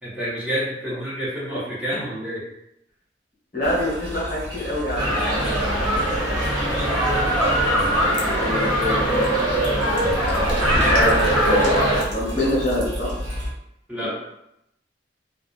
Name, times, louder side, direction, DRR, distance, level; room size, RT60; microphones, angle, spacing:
voice 1, 0.0-2.4 13.9-14.1, equal, 5° right, -10 dB, 0.7 m, -28 dB
voice 2, 3.5-5.1 7.9-9.4 10.7-11.8 12.1-13.1 14.0-14.1, equal, 50° left, -7 dB, 1.2 m, -25 dB
sound 1, 3.6-13.5, equal, 85° right, 0.6 m, -32 dB
sound 2, 4.9-12.0, equal, 25° right, 1.0 m, -21 dB
2.7 x 2.0 x 2.4 m, 0.81 s
head